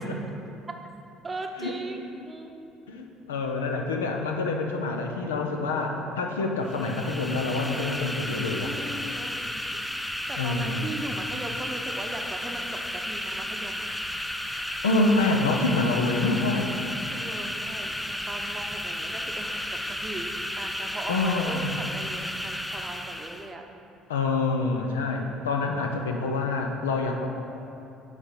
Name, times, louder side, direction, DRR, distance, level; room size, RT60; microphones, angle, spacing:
voice 1, 1.2-2.7 8.6-9.9 10.3-13.9 17.1-23.6, right 2 dB, 25° right, 3 dB, 0.7 m, -39 dB
voice 2, 2.9-8.7 10.4-11.0 14.5-16.7 21.1-21.7 24.1-27.3, left 3 dB, 85° left, 3 dB, 0.5 m, -27 dB
sound 1, 6.6-23.5, left 1 dB, 5° left, 0.4 m, -33 dB
7.1 x 3.3 x 5.2 m, 2.7 s
hypercardioid pair, 60°, 0 cm